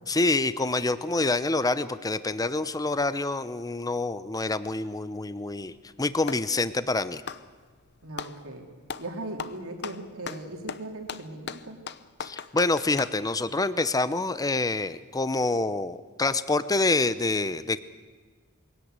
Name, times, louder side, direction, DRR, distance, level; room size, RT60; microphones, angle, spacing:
voice 1, 0.1-5.7 6.0-7.2 12.2-17.8, left 2 dB, 15° left, 14 dB, 0.7 m, -26 dB
Clapping, 5.6-6.5 7.1-8.4 8.9-9.1 9.4-13.2, left 6 dB, 55° left, 0.8 m, -38 dB
voice 2, 8.0-8.7 9.0-11.8, right 2 dB, 90° right, 3 dB, 3.4 m, -38 dB
22.0 x 17.0 x 8.2 m, 1.5 s
head